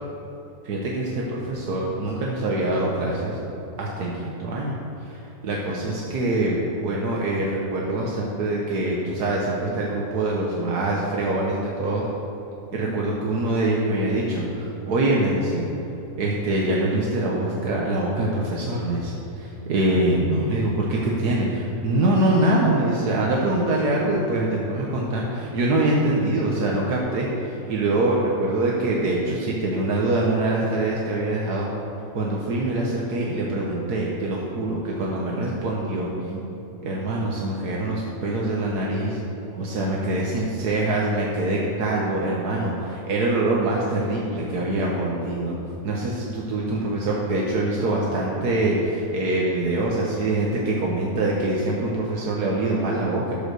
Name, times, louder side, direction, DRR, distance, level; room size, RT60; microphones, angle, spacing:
voice 1, 0.6-3.4 3.8-12.0 12.7-15.7 16.2-31.7 32.1-36.4 36.8-39.2 39.5-45.6 45.8-53.4, right 2 dB, 80° right, -3 dB, 1.6 m, -24 dB
12.5 x 5.3 x 6.4 m, 3.0 s
omnidirectional pair, 1.7 m